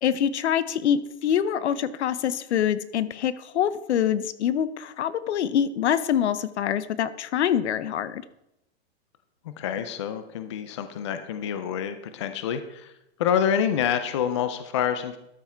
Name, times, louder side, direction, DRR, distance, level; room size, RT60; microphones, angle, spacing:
voice 1, 0.0-8.2, left 9 dB, 80° left, 15 dB, 0.8 m, -25 dB
voice 2, 9.4-12.9 13.2-15.2, left 8 dB, 25° left, 10 dB, 0.4 m, -27 dB
12.5 x 5.9 x 4.5 m, 0.83 s
supercardioid pair, 175°, 33 cm